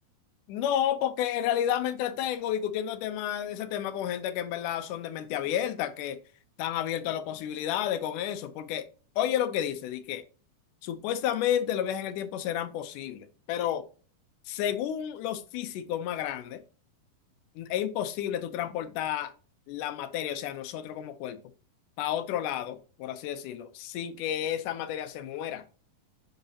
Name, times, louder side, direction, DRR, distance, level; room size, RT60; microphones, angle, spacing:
voice 1, 0.5-6.2 6.6-8.9 9.2-10.2 10.8-13.9 14.5-16.6 17.6-19.3 19.7-21.4 22.0-25.6, left 10 dB, 85° left, 2.1 m, -31 dB
10.0 x 4.0 x 2.7 m
omnidirectional pair, 3.8 m